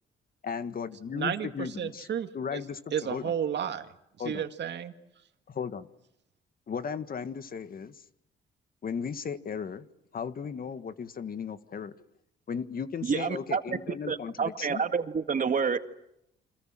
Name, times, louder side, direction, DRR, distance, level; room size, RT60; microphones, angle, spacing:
voice 1, 0.4-2.1 2.3-3.3 4.2-4.4 5.5-5.9 6.7-8.0 8.8-9.9 10.1-11.9 12.5-14.8, left 6 dB, 45° left, 11 dB, 1.7 m, -36 dB
voice 2, 1.1-1.5 1.8-2.6 2.9-3.9 4.2-4.9, right 8 dB, 60° right, 8 dB, 2.1 m, -32 dB
voice 3, 13.0-13.8 14.1-15.8, right 6 dB, 40° right, 8 dB, 2.0 m, -28 dB
30.0 x 26.0 x 7.7 m, 0.81 s
cardioid pair, 90°, 20 cm